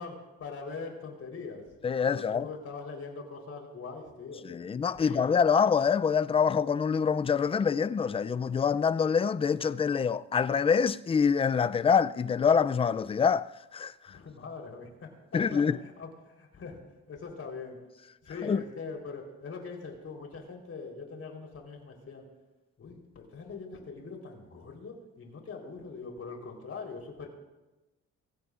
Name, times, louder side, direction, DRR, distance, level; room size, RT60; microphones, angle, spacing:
voice 1, 0.0-4.6 5.0-5.3 14.1-16.8 17.1-17.8 18.2-22.2 22.8-27.3, left 4 dB, 50° left, 3.9 m, -42 dB
voice 2, 1.8-2.5 4.4-13.9 15.3-15.8 18.4-18.6, left 6 dB, 20° left, 0.3 m, -25 dB
24.5 x 16.0 x 2.5 m
cardioid pair, 90°, 30 cm